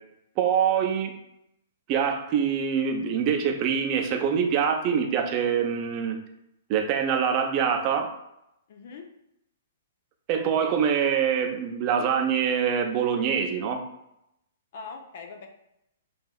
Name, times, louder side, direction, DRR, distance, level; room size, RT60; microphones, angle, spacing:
voice 1, 0.4-1.1 1.9-6.2 6.7-8.1 10.3-13.8, right 7 dB, 35° right, 4 dB, 0.7 m, -24 dB
voice 2, 8.7-9.1 14.7-15.5, left 5 dB, 50° left, 3 dB, 0.6 m, -41 dB
6.8 x 2.7 x 2.4 m, 0.83 s
figure-of-eight pair, 115°, 0 cm